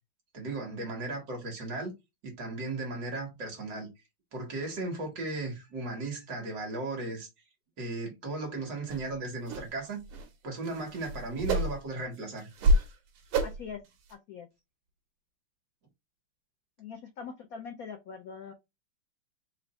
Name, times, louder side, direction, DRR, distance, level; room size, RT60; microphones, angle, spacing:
voice 1, 0.3-1.9 2.2-3.9 4.3-7.3 7.8-10.0 10.4-12.5, right 2 dB, 55° right, 2.1 m, -36 dB
sound 1, 8.9-9.0 9.5-9.7 10.0-10.3 10.6-12.0 12.4-12.9 13.3-13.7 14.1-14.2, right 1 dB, 85° right, 1.9 m, -27 dB
voice 2, 13.4-13.8 14.1-14.5 16.8-18.5, left 6 dB, 80° left, 0.8 m, -42 dB
4.5 x 2.5 x 4.1 m
omnidirectional pair, 2.4 m